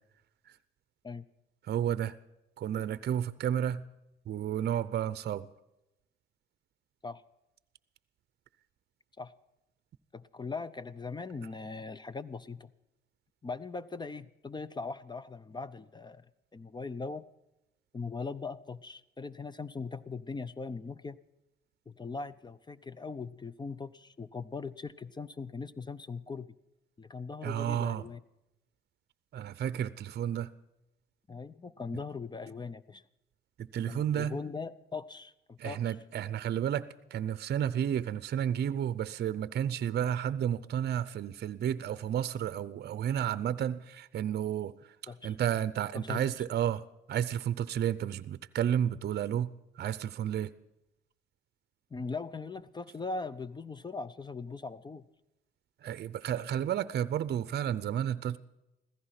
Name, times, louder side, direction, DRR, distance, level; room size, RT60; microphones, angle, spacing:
voice 1, 1.7-2.1 2.6-3.8 4.3-5.5 27.4-28.0 29.3-30.5 33.6-34.4 35.6-44.7 45.2-46.8 47.1-49.5 49.8-50.5 55.8-58.4, right 10 dB, 55° right, 0.6 m, -31 dB
voice 2, 10.1-12.7 13.4-16.3 16.5-17.2 17.9-21.2 21.9-26.5 27.0-28.2 31.3-33.0 33.9-36.0 45.1-45.4 45.9-46.3 51.9-55.0, left 4 dB, 20° left, 0.6 m, -40 dB
15.5 x 14.0 x 5.8 m
cardioid pair, 90°, 20 cm